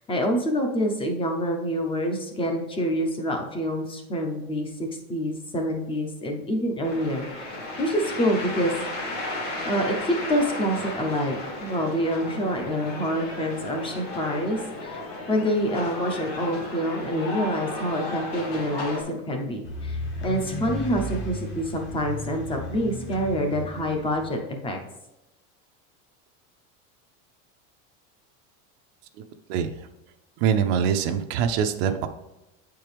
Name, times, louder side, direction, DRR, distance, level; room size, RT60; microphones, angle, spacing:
voice 1, 0.0-8.7 9.6-15.0 15.3-24.8, equal, 15° left, 3 dB, 0.7 m, -27 dB
sound 1, 6.8-19.0, left 2 dB, 45° left, 1.8 m, -34 dB
sound 2, 19.6-24.2, left 1 dB, 30° left, 1.1 m, -34 dB
voice 2, 29.5-29.9 30.4-32.1, right 8 dB, 55° right, 7 dB, 0.6 m, -24 dB
8.5 x 4.6 x 3.4 m, 0.93 s
supercardioid pair, 160°, 36 cm